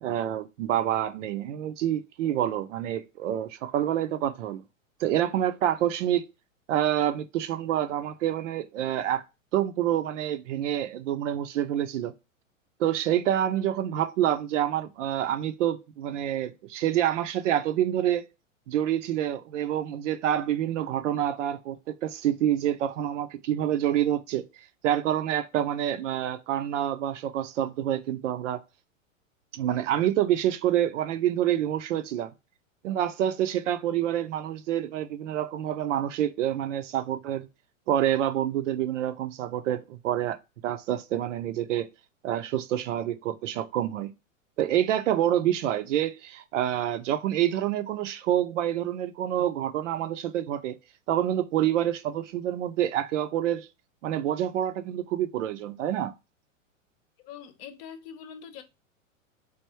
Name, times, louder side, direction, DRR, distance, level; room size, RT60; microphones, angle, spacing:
voice 1, 0.0-4.6 5.0-6.2 6.7-9.2 9.5-12.1 12.8-18.2 18.7-24.4 24.8-28.6 29.5-32.3 32.8-37.5 37.9-40.4 40.6-41.9 42.2-44.1 44.6-50.8 51.1-53.7 54.0-56.1, right 11 dB, 65° right, 0.6 m, -27 dB
voice 2, 57.2-58.6, left 8 dB, 45° left, 0.8 m, -43 dB
3.5 x 2.5 x 4.3 m
hypercardioid pair, 115°, 40 cm